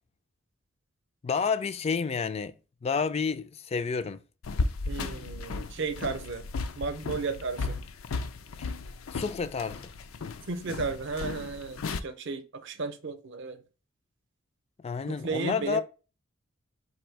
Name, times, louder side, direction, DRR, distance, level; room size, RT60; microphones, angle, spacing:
voice 1, 1.2-2.5 2.8-4.2 8.6-8.7 9.1-9.9 14.8-15.8, left 5 dB, 30° left, 0.3 m, -30 dB
sound 1, 4.4-12.0, left 3 dB, 90° left, 0.5 m, -35 dB
voice 2, 4.9-6.5 6.8-7.8 10.5-13.6 15.1-15.8, right 4 dB, 65° right, 0.6 m, -34 dB
4.2 x 2.7 x 4.5 m
head